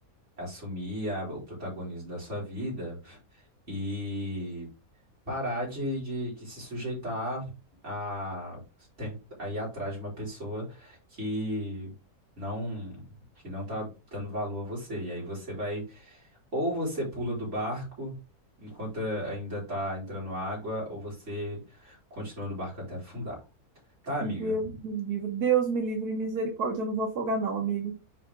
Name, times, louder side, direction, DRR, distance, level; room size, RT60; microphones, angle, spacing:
voice 1, 0.4-4.7 5.3-7.5 7.8-8.6 9.0-11.9 12.4-13.1 13.4-16.2 16.5-18.2 18.6-23.4 24.0-24.5, equal, 50° right, -4 dB, 5.0 m, -34 dB
voice 2, 24.2-27.9, right 4 dB, 85° right, 2 dB, 1.6 m, -29 dB
7.7 x 4.9 x 3.6 m, 0.29 s
omnidirectional pair, 1.6 m